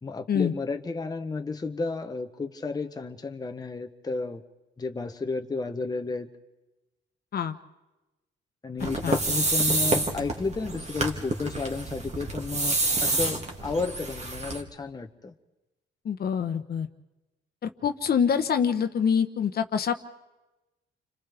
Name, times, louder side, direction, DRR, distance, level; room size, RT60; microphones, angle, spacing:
voice 1, 0.0-4.4 4.8-6.3 8.6-15.3, left 4 dB, 20° left, 6 dB, 0.8 m, -32 dB
sound 1, 8.8-14.6, right 2 dB, 35° right, 2.1 m, -28 dB
voice 2, 16.0-16.9 17.6-19.9, left 7 dB, 50° left, 7 dB, 1.0 m, -25 dB
29.5 x 25.5 x 3.4 m, 1.1 s
cardioid pair, 90°, 20 cm